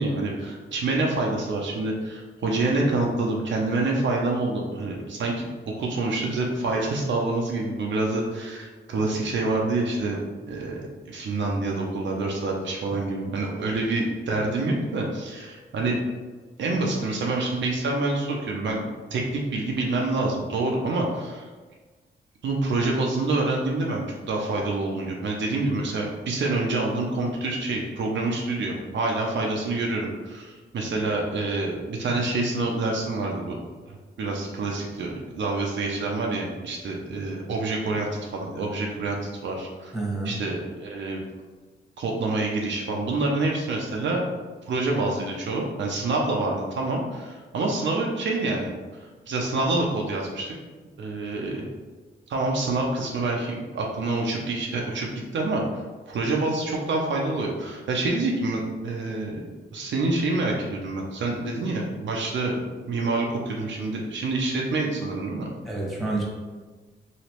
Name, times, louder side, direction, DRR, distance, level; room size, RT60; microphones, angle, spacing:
voice 1, 0.0-10.2 10.5-16.0 16.6-18.8 19.1-21.4 22.4-33.6 34.2-40.0 40.2-41.2 42.0-44.2 44.7-48.7 49.3-50.5 51.0-51.6 52.3-59.4 59.7-62.5 62.9-65.5, right 2 dB, 65° right, -1 dB, 0.6 m, -27 dB
voice 2, 39.9-40.3 65.6-66.2, right 2 dB, ahead, -4 dB, 1.3 m, -29 dB
3.1 x 2.8 x 2.9 m, 1.3 s
cardioid pair, 60°, 20 cm